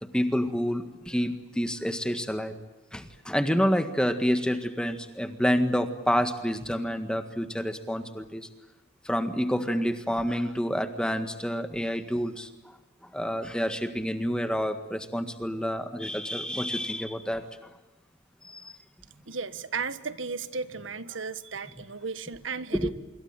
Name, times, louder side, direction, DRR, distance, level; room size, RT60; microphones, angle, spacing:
voice 1, 0.0-2.5 2.9-8.5 9.0-12.5 13.0-17.7 18.4-18.8 22.7-22.9, equal, 5° left, 8 dB, 1.7 m, -28 dB
voice 2, 19.3-22.9, right 5 dB, 75° right, 13 dB, 1.4 m, -35 dB
26.0 x 23.0 x 9.0 m, 1.1 s
head